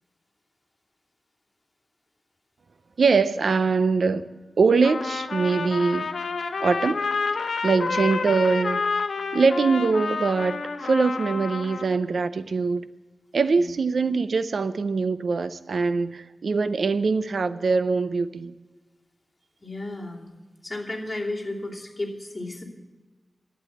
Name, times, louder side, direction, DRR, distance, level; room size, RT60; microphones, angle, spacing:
voice 1, 3.0-4.3 4.6-6.1 6.6-7.0 7.6-8.8 9.3-12.8 13.3-18.5, right 4 dB, 80° right, 14 dB, 0.5 m, -23 dB
Trumpet, 4.8-12.0, left 4 dB, 90° left, 0.7 m, -29 dB
voice 2, 19.6-20.3 20.6-22.6, left 2 dB, 25° left, -4 dB, 2.9 m, -33 dB
12.0 x 8.3 x 8.4 m, 1.3 s
wide cardioid pair, 75°, 0 cm